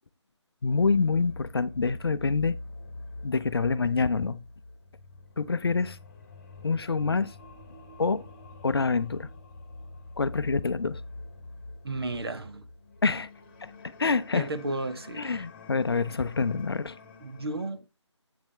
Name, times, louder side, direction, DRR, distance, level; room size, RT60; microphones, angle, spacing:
voice 1, 0.6-2.6 3.2-4.4 5.4-6.0 6.6-7.3 8.0-8.3 8.6-9.3 10.2-11.0 13.0-13.3 13.6-13.7 14.0-14.5 15.2-17.0, left 4 dB, 55° left, 0.5 m, -26 dB
sound 1, 0.7-17.7, left 2 dB, 25° left, 1.4 m, -45 dB
voice 2, 11.8-12.7 14.3-15.4 17.2-17.8, right 2 dB, 55° right, 1.1 m, -33 dB
8.1 x 7.1 x 3.3 m
figure-of-eight pair, 155°, 16 cm